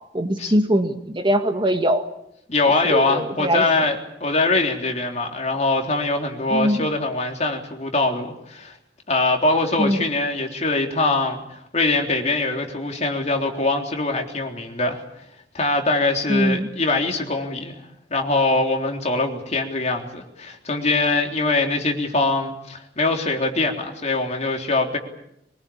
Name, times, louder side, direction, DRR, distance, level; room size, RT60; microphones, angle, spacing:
voice 1, 0.1-2.0 2.8-3.6 6.5-6.8 9.8-10.0 16.3-16.7, equal, 30° right, 6 dB, 1.8 m, -21 dB
voice 2, 2.5-8.7 9.1-11.4 11.7-15.0 15.5-17.7 18.1-25.0, left 2 dB, 40° left, 2 dB, 3.7 m, -23 dB
24.0 x 21.5 x 8.7 m, 0.79 s
head